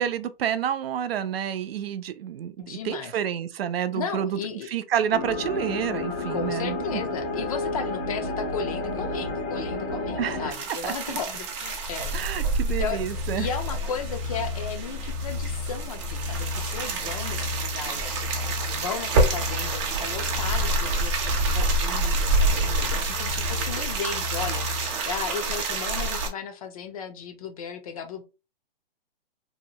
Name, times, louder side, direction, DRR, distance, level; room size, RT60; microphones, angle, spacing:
voice 1, 0.0-4.4 4.7-7.0 10.2-10.5 10.8-11.2 12.1-13.5, right 9 dB, 75° right, 0.5 m, -29 dB
voice 2, 2.6-3.1 3.9-4.7 6.3-12.2 12.8-18.3 18.7-28.2, left 6 dB, 40° left, 0.4 m, -35 dB
sound 1, 5.1-10.5, left 2 dB, 80° left, 0.9 m, -31 dB
sound 2, 10.5-26.3, right 2 dB, 30° right, 0.6 m, -28 dB
sound 3, 12.9-25.0, left 4 dB, 60° right, 0.8 m, -34 dB
2.7 x 2.1 x 2.7 m
hypercardioid pair, 145°, 30 cm